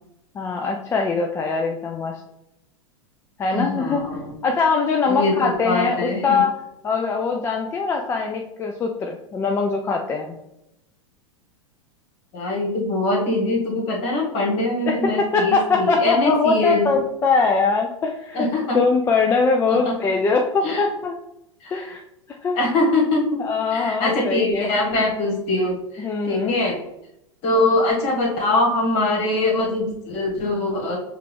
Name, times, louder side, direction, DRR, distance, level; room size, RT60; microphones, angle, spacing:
voice 1, 0.3-2.2 3.4-4.0 4.4-6.5 6.8-10.4 14.9-18.5 18.7-21.2 21.7-22.0 22.4-22.6 23.4-24.7 26.0-26.6, left 4 dB, 15° left, 2 dB, 0.3 m, -22 dB
voice 2, 3.5-4.0 5.1-6.4 12.3-16.9 18.3-18.8 19.7-19.9 20.6-20.8 21.6-21.8 22.5-23.4 23.7-26.8 27.4-31.0, left 2 dB, 40° left, -1 dB, 1.5 m, -22 dB
6.4 x 2.4 x 3.3 m, 0.85 s
figure-of-eight pair, 90°, 16 cm